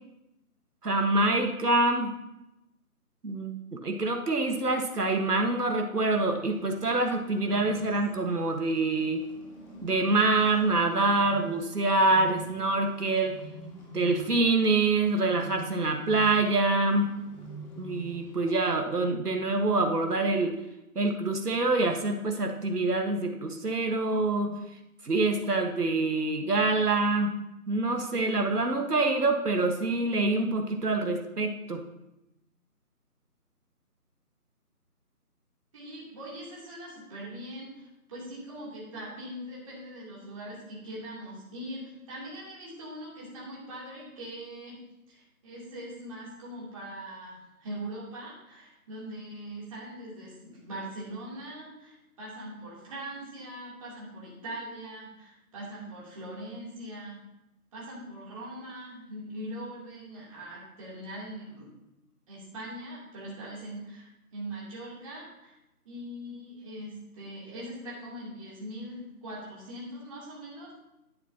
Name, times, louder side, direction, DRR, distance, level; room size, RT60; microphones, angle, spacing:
voice 1, 0.8-2.1 3.2-9.2 9.8-13.4 13.9-17.1 17.8-20.5 20.9-24.5 25.0-27.3 27.7-31.8, right 2 dB, 90° right, 4 dB, 1.6 m, -26 dB
Bird, 6.4-18.6, right 1 dB, 30° left, 2.4 m, -47 dB
voice 2, 35.7-44.8 45.1-57.2 57.7-61.7 62.3-65.5 65.8-70.7, right 1 dB, 20° right, -7 dB, 3.0 m, -41 dB
12.5 x 11.0 x 2.9 m, 0.91 s
figure-of-eight pair, 165°, 45 cm